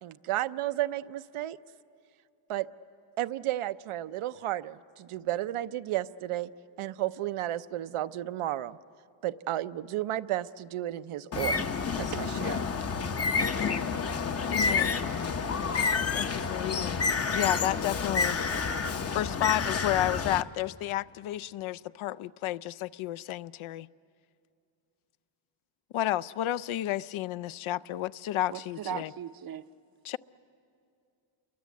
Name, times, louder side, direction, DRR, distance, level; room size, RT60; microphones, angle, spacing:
voice 1, 0.0-1.6 2.5-2.7 3.2-6.5 6.8-8.8 9.2-12.6, right 14 dB, 80° right, 0.7 m, -33 dB
Bird, 11.3-20.4, left 5 dB, 30° left, 0.7 m, -29 dB
voice 2, 13.3-13.9 14.5-14.9 16.1-17.0 17.3-18.4 18.8-23.9 25.9-29.1 30.0-30.2, left 14 dB, 75° left, 0.5 m, -32 dB
voice 3, 28.5-29.7, right 9 dB, 45° right, 0.6 m, -38 dB
29.5 x 23.5 x 8.4 m
wide cardioid pair, 150°, 50 cm